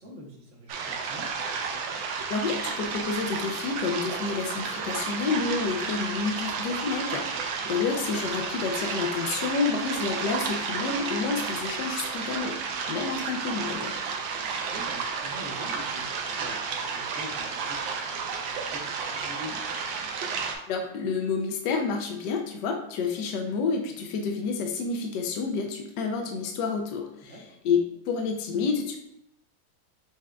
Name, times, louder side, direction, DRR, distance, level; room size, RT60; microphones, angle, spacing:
voice 1, 0.0-1.3 7.4-7.6 14.7-17.8 18.1-19.6 27.2-27.6, equal, 45° right, -1 dB, 1.1 m, -45 dB
sound 1, 0.7-20.6, right 5 dB, 90° right, 1.4 m, -32 dB
voice 2, 2.3-12.6 12.9-14.0 20.7-27.4 27.6-29.0, left 5 dB, 75° left, 3 dB, 1.2 m, -29 dB
6.1 x 3.4 x 2.2 m, 0.81 s
omnidirectional pair, 2.0 m